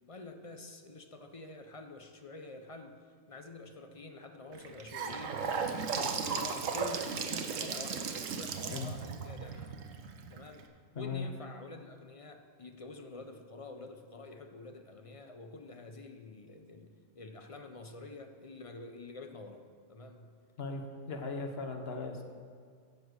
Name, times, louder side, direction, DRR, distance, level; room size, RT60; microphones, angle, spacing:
voice 1, 0.1-3.0 3.3-9.7 10.3-10.7 10.9-19.6 19.9-20.4, left 3 dB, 35° left, 6 dB, 0.6 m, -48 dB
Gurgling / Sink (filling or washing) / Bathtub (filling or washing), 4.5-10.6, right 5 dB, 80° right, 1.2 m, -36 dB
voice 2, 10.9-11.3 20.6-22.2, left 4 dB, 55° left, 5 dB, 1.2 m, -38 dB
11.0 x 7.4 x 6.4 m, 2.1 s
omnidirectional pair, 1.3 m